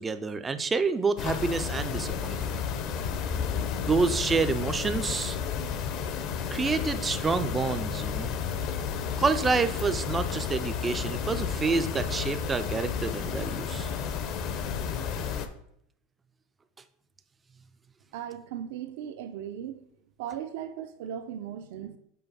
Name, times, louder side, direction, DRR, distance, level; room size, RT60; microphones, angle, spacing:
voice 1, 0.0-2.5 3.8-5.4 6.5-8.3 9.2-13.9, right 4 dB, 15° right, 0.4 m, -28 dB
sound 1, 1.2-15.5, left 7 dB, 45° left, 0.7 m, -32 dB
voice 2, 18.1-19.9 20.2-22.0, right 9 dB, 70° right, 0.6 m, -37 dB
5.7 x 4.4 x 5.4 m
supercardioid pair, 145°, 0 cm